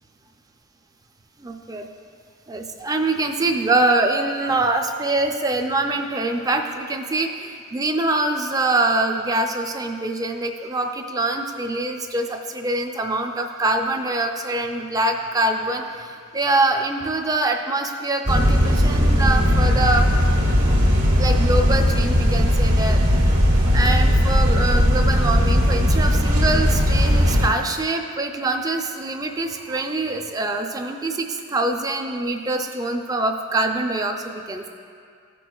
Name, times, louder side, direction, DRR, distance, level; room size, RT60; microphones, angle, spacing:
voice 1, 1.4-1.9 2.5-20.1 21.2-23.0 23.6-34.7, right 2 dB, 15° right, 4 dB, 0.4 m, -24 dB
sound 1, 18.3-27.5, equal, 75° right, 1.5 m, -18 dB
14.5 x 6.1 x 2.3 m, 2.3 s
head